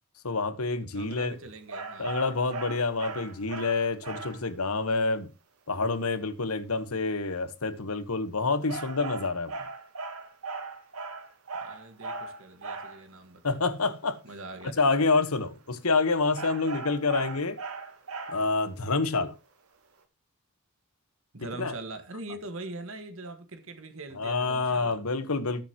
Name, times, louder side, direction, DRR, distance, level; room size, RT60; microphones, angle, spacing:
voice 1, 0.2-1.3 2.0-5.3 5.7-9.5 13.4-14.2 14.8-17.6 18.3-19.3 21.6-21.7 24.2-25.6, left 3 dB, 90° left, 1.3 m, -27 dB
voice 2, 0.9-2.1 11.6-13.7 14.2-14.8 21.3-24.9, right 2 dB, 70° right, 1.7 m, -42 dB
sound 1, 1.7-4.5 8.7-13.0 16.3-18.6, right 3 dB, 90° right, 2.0 m, -38 dB
19.0 x 6.9 x 3.0 m
head